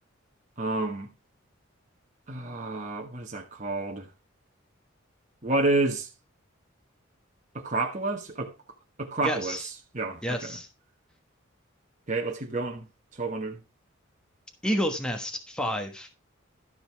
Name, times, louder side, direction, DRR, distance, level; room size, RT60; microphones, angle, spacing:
voice 1, 0.6-1.1 2.3-4.1 5.4-6.1 7.5-8.5 9.0-9.6 9.9-10.6 12.1-12.8 13.1-13.6, right 2 dB, 35° right, 1.3 m, -29 dB
voice 2, 9.2-9.7 10.2-10.7 14.6-16.1, equal, 5° left, 1.3 m, -30 dB
12.5 x 5.3 x 4.6 m
head